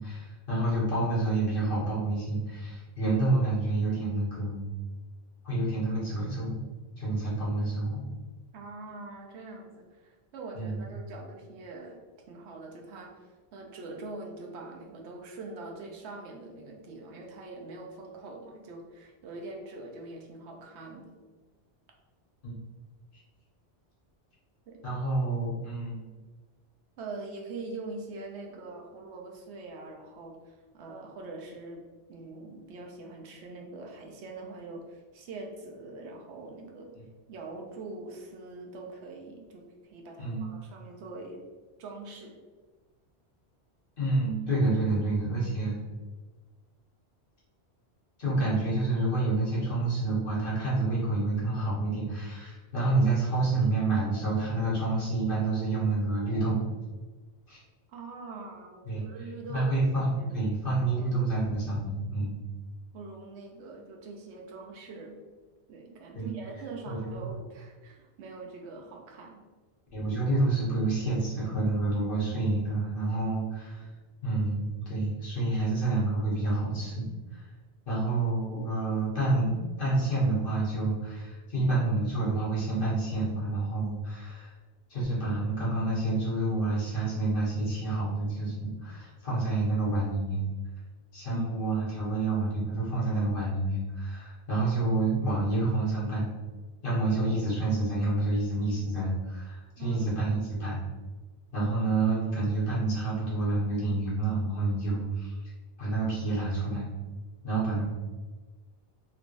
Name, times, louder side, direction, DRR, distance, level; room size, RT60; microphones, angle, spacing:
voice 1, 0.0-4.6 5.4-6.5 7.0-8.0 10.5-10.8 22.4-22.5 24.8-26.1 36.9-37.0 40.2-40.4 44.0-45.8 48.2-56.6 57.5-57.6 58.8-59.0 59.5-62.4 66.1-66.3 66.8-67.3 69.9-73.9 74.2-77.4 77.8-84.5 84.9-90.4 91.1-96.3 96.8-100.8 101.5-105.5 105.8-106.8 107.4-107.8, right 2 dB, 55° left, -7 dB, 1.3 m, -28 dB
voice 2, 8.5-21.1 24.7-24.8 27.0-36.9 37.3-41.4 41.8-42.4 57.9-59.7 60.2-60.5 61.0-61.4 62.9-65.2 65.7-69.4 91.3-91.4 99.8-100.2, right 3 dB, 85° right, 1 dB, 0.9 m, -43 dB
3.4 x 3.1 x 2.5 m, 1.4 s
omnidirectional pair, 1.1 m